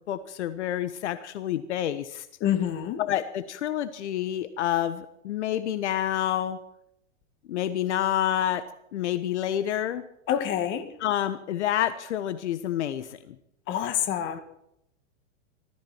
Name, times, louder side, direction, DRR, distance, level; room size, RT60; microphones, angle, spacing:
voice 1, 0.1-2.3 3.0-6.6 7.5-8.7 8.9-10.1 11.0-13.3, left 11 dB, 75° left, 13 dB, 1.3 m, -28 dB
voice 2, 2.4-3.0 10.3-10.9 13.7-14.4, left 10 dB, 35° left, 9 dB, 2.2 m, -27 dB
20.0 x 14.0 x 4.5 m, 0.77 s
hypercardioid pair, 140°, 35 cm